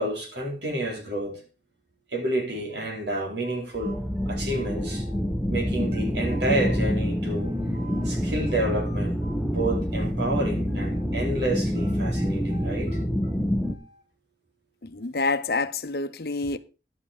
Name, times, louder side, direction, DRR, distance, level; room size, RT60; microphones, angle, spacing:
voice 1, 0.0-1.4 2.1-4.0 4.3-5.1 5.5-13.0, right 1 dB, 75° right, 4.0 m, -30 dB
sound 1, 2.7-5.2 5.5-8.1 8.5-11.1 11.4-14.0, right 2 dB, 50° right, 4.4 m, -49 dB
sound 2, 3.8-13.8, equal, ahead, 0.9 m, -27 dB
voice 2, 14.8-16.6, left 3 dB, 60° left, 0.8 m, -27 dB
11.0 x 8.0 x 5.0 m
head